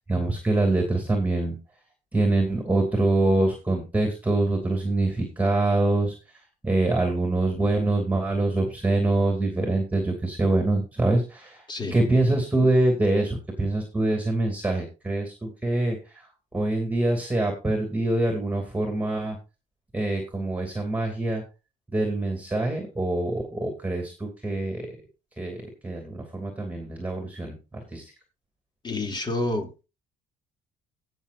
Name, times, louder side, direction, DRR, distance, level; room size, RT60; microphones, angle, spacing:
voice 1, 0.1-1.6 2.1-6.1 6.6-11.6 11.9-16.2 16.5-19.4 19.9-21.4 21.9-24.9 25.4-28.1, right 2 dB, 10° right, 3 dB, 2.8 m, -25 dB
voice 2, 28.8-29.8, left 2 dB, 25° left, 3 dB, 2.9 m, -29 dB
18.0 x 6.3 x 2.6 m, 0.29 s
cardioid pair, 110°, 17 cm